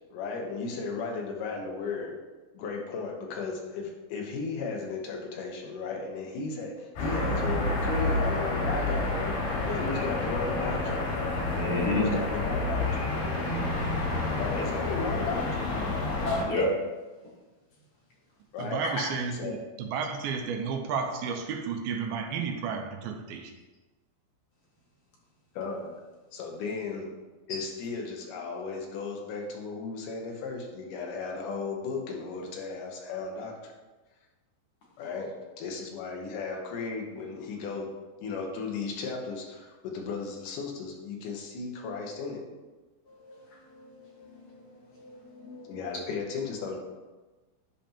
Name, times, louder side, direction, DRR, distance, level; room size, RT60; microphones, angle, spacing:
voice 1, 0.1-2.2 2.5-11.1 11.8-13.0 14.4-15.7 18.5-18.8 19.3-19.6 25.6-25.9 26.3-27.1 27.5-33.5 35.0-37.9 38.2-42.4 45.6-46.8, left 4 dB, 65° left, 0 dB, 2.5 m, -35 dB
sound 1, 7.0-16.4, left 2 dB, 85° left, 4.5 m, -29 dB
voice 2, 11.5-12.0 16.4-16.7 43.2-43.3 43.7-44.6 45.0-45.6, left 3 dB, 50° left, -4 dB, 1.7 m, -32 dB
voice 3, 18.6-23.5, right 6 dB, 90° right, 4 dB, 2.6 m, -32 dB
11.0 x 5.2 x 2.9 m, 1.2 s
omnidirectional pair, 4.3 m